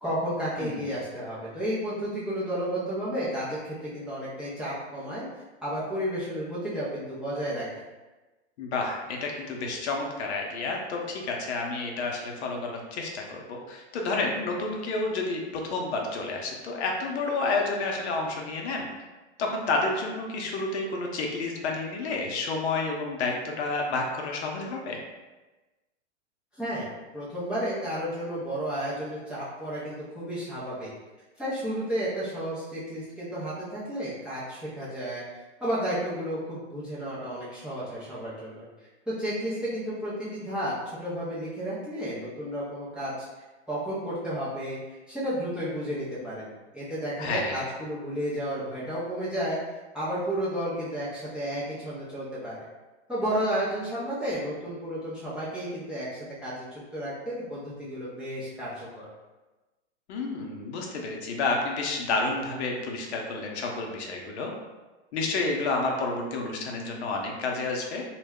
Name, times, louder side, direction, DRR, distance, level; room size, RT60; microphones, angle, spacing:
voice 1, 0.0-5.2 5.6-7.7 26.5-26.9 27.1-30.9 31.4-38.7 39.1-43.3 43.7-49.6 49.9-52.6 53.1-59.1, equal, 5° right, -10 dB, 0.4 m, -32 dB
voice 2, 0.6-0.9 8.6-18.9 19.4-25.0 47.2-47.6 60.1-64.5 65.1-68.0, left 3 dB, 65° left, 1 dB, 0.7 m, -30 dB
2.2 x 2.1 x 3.4 m, 1.2 s
hypercardioid pair, 125°, 36 cm